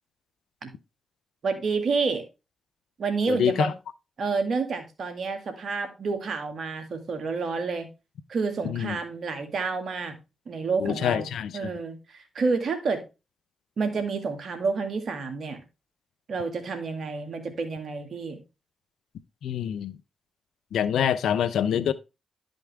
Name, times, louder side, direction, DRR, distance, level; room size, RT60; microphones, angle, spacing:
voice 1, 1.4-2.2 3.0-3.7 4.2-7.9 8.3-10.2 10.5-11.3 11.5-13.0 13.8-15.6 16.3-18.4, right 4 dB, 65° right, 2.1 m, -29 dB
voice 2, 3.3-3.7 8.6-9.0 10.8-11.7 19.4-19.9 20.7-21.9, left 9 dB, 85° left, 0.6 m, -26 dB
11.0 x 5.4 x 3.4 m
supercardioid pair, 55°, 0 cm